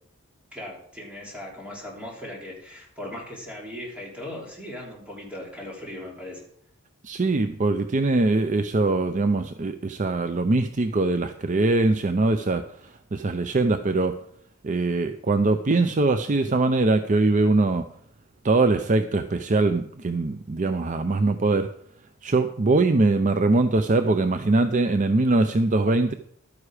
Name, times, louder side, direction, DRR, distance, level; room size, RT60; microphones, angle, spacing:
voice 1, 0.5-6.4, left 1 dB, 5° right, -3 dB, 3.5 m, -38 dB
voice 2, 7.0-14.1 14.6-17.9 18.4-21.7 22.2-26.1, right 2 dB, 35° right, 9 dB, 0.5 m, -22 dB
12.0 x 9.8 x 5.0 m, 0.67 s
head